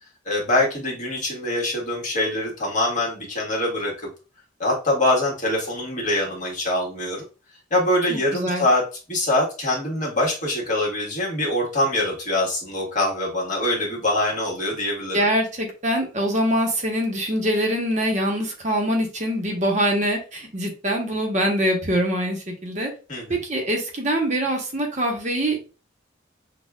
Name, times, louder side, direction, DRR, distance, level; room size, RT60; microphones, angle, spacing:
voice 1, 0.2-3.9 4.6-7.2 7.7-8.8 9.1-15.2 23.1-23.4, left 1 dB, 40° left, -3 dB, 1.5 m, -24 dB
voice 2, 8.1-8.6 15.1-22.9 23.3-25.6, equal, 40° right, 1 dB, 0.9 m, -24 dB
6.3 x 2.3 x 2.3 m, 0.33 s
head